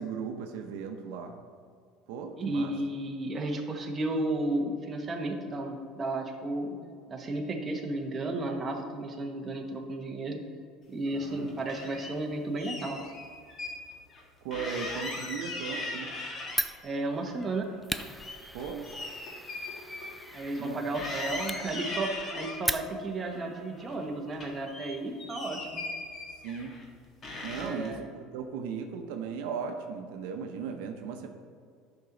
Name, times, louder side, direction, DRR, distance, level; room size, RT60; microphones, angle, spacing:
voice 1, 0.0-1.4 2.1-2.8 11.2-11.5 14.4-16.1 18.5-18.9 20.6-20.8 26.4-26.8 27.4-28.0 28.3-31.3, right 6 dB, 80° right, 4 dB, 0.8 m, -37 dB
voice 2, 2.4-6.8 7.1-10.4 10.9-13.0 16.8-17.7 20.3-25.8 27.6-28.0, right 2 dB, 25° right, 2 dB, 1.1 m, -33 dB
sound 1, 11.1-12.1 12.6-13.8 14.1-14.2 14.5-16.9 17.3-20.7 20.9-22.6 23.2-24.1 24.3-26.9 27.2-27.9, left 2 dB, 35° left, 1.5 m, -39 dB
Fire, 16.5-23.3, right 1 dB, ahead, 0.3 m, -38 dB
sound 2, 18.6-19.4 19.7-20.1 20.7-20.8 21.3-22.0 22.3-22.8 23.3-23.5 23.9-24.0, left 2 dB, 65° left, 1.9 m, -50 dB
10.5 x 6.0 x 3.9 m, 2.1 s
supercardioid pair, 125°, 0 cm